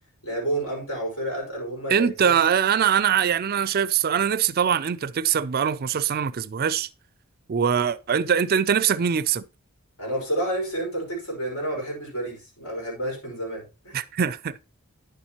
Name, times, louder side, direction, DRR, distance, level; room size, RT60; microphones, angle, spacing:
voice 1, 0.2-2.4 10.0-14.0, right 1 dB, 75° left, 5.2 m, -30 dB
voice 2, 1.9-6.9 7.5-9.4 13.9-14.6, right 8 dB, 45° right, 0.4 m, -22 dB
10.0 x 7.2 x 3.0 m
head